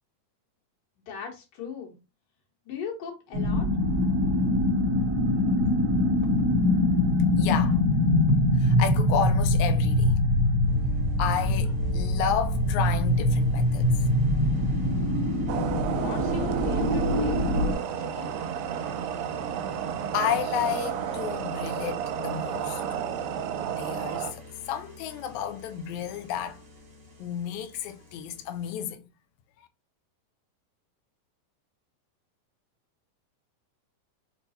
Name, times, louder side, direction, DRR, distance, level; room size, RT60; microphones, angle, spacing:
voice 1, 1.1-1.9 2.7-3.7 15.8-18.3, left 6 dB, 70° left, 2.8 m, -38 dB
sound 1, 3.3-17.7, left 1 dB, 70° right, 1.6 m, -23 dB
voice 2, 7.4-7.8 8.5-10.2 11.2-13.9 20.1-22.8 23.8-24.4 24.7-26.6 27.2-29.0 29.6-29.7, left 8 dB, 85° left, 1.6 m, -31 dB
sound 2, 10.7-28.9, left 2 dB, 50° right, 0.9 m, -45 dB
sound 3, 15.5-24.3, right 9 dB, 85° right, 2.3 m, -32 dB
5.8 x 2.2 x 4.1 m
omnidirectional pair, 4.1 m